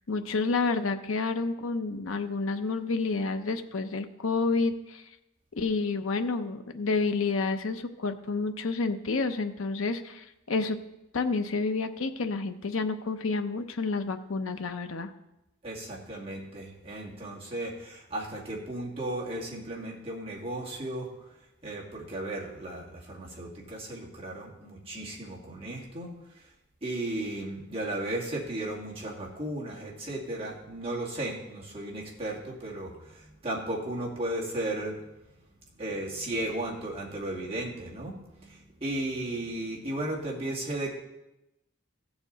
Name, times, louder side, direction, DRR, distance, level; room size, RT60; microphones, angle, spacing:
voice 1, 0.1-5.0 5.6-10.8 11.1-15.1, left 3 dB, 80° left, 7 dB, 0.7 m, -29 dB
voice 2, 15.6-21.1 21.6-26.5 26.8-35.0 35.8-40.9, right 1 dB, 25° right, -4 dB, 2.1 m, -35 dB
15.5 x 7.0 x 4.0 m, 0.93 s
head